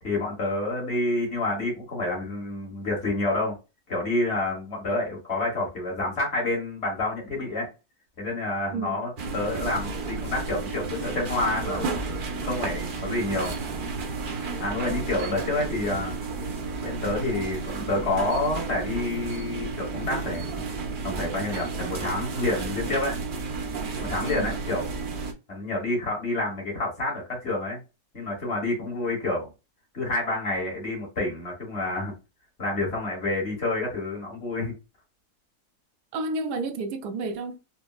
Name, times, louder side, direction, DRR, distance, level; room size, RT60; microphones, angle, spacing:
voice 1, 0.0-3.6 3.9-7.7 8.2-11.8 12.3-13.5 14.6-16.2 16.8-20.5 21.0-23.2 24.0-24.9 25.5-27.8 28.1-29.5 29.9-32.1 32.6-34.7, left 2 dB, 45° left, 1.5 m, -28 dB
voice 2, 8.7-9.1 24.2-24.5 36.1-37.6, right 3 dB, 85° right, 1.1 m, -31 dB
sound 1, 9.2-25.3, right 4 dB, 65° right, 0.5 m, -32 dB
4.3 x 2.1 x 2.3 m
omnidirectional pair, 1.7 m